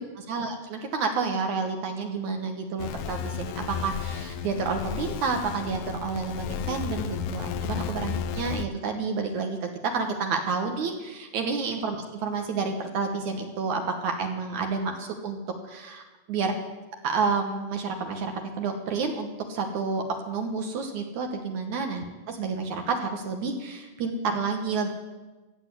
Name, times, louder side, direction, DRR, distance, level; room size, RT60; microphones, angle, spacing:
voice 1, 0.0-15.4 15.7-16.0 16.3-16.5 17.0-24.9, right 4 dB, 70° right, 3 dB, 2.4 m, -30 dB
sound 1, 2.8-8.7, left 7 dB, 85° left, 1.4 m, -33 dB
15.0 x 8.6 x 8.3 m, 1.2 s
omnidirectional pair, 3.7 m